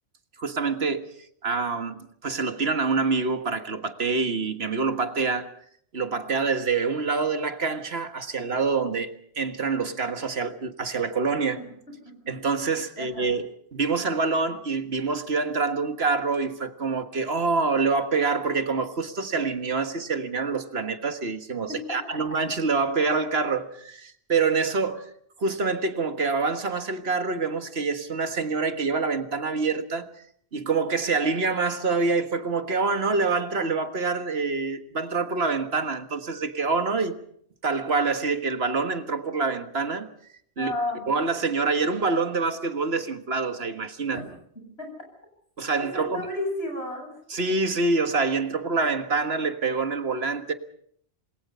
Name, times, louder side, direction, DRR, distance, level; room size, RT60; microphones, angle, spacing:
voice 1, 0.4-1.1 1.4-5.5 5.9-11.6 12.3-25.1 25.4-30.1 30.5-37.2 37.6-40.1 40.6-40.7 41.1-44.2 45.6-46.3 47.3-50.5, right 4 dB, 70° right, 1.8 m, -26 dB
voice 2, 13.0-13.3 21.7-22.2 40.6-41.0 44.1-44.2 44.8-44.9 45.8-47.1, left 1 dB, 75° left, 8.5 m, -32 dB
28.0 x 21.0 x 5.6 m
omnidirectional pair, 1.1 m